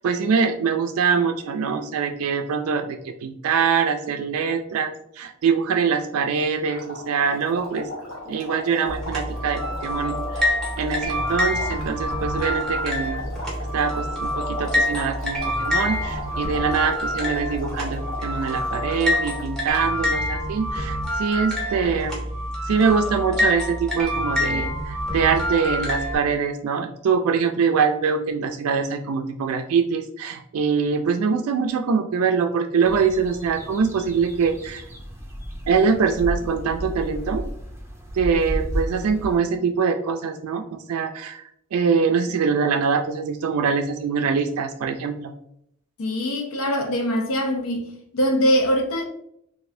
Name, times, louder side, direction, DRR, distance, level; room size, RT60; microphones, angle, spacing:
voice 1, 0.0-7.9 8.3-13.2 13.6-22.2 22.6-34.8 35.7-37.4 38.1-40.6 40.9-41.4 41.7-45.3, right 5 dB, 85° right, 0.3 m, -23 dB
sound 1, 6.7-19.5, left 2 dB, 60° left, 1.0 m, -37 dB
sound 2, 8.9-26.2, left 1 dB, 5° left, 0.9 m, -26 dB
sound 3, 32.8-39.4, equal, 10° right, 0.5 m, -33 dB
voice 2, 46.0-47.8 48.1-49.0, equal, 80° left, 0.5 m, -22 dB
4.1 x 2.6 x 2.6 m
head